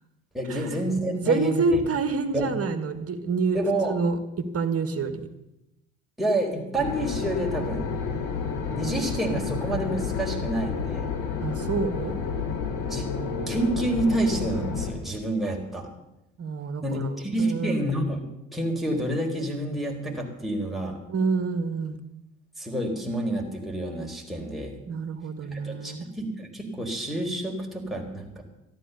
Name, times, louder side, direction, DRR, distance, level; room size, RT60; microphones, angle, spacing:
voice 1, 0.3-1.8 2.3-2.5 3.5-4.0 6.2-7.9 8.7-11.1 12.1-12.2 12.8-13.1 13.5-15.9 16.8-21.0 22.6-24.7 25.5-28.4, right 1 dB, ahead, 0 dB, 4.1 m, -28 dB
voice 2, 1.3-3.6 3.9-5.3 11.4-12.1 16.4-17.1 17.5-17.9 21.1-22.0 24.9-26.1, right 4 dB, 40° right, 10 dB, 1.7 m, -27 dB
sound 1, 6.8-14.9, left 5 dB, 70° left, 2.5 m, -30 dB
13.0 x 12.0 x 6.9 m, 0.92 s
hypercardioid pair, 60°, 37 cm